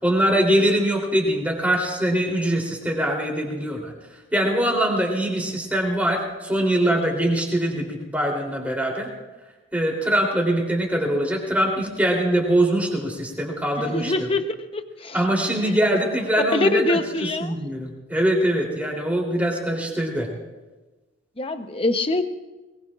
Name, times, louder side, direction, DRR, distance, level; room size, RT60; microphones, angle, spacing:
voice 1, 0.0-3.9 4.3-9.1 9.7-14.3 15.1-20.3, right 1 dB, 5° right, -1 dB, 3.3 m, -23 dB
voice 2, 13.8-14.5 14.7-15.2 15.6-15.7 16.5-17.5 21.4-22.2, left 2 dB, 25° left, 7 dB, 0.9 m, -24 dB
22.5 x 21.5 x 2.5 m, 1.2 s
head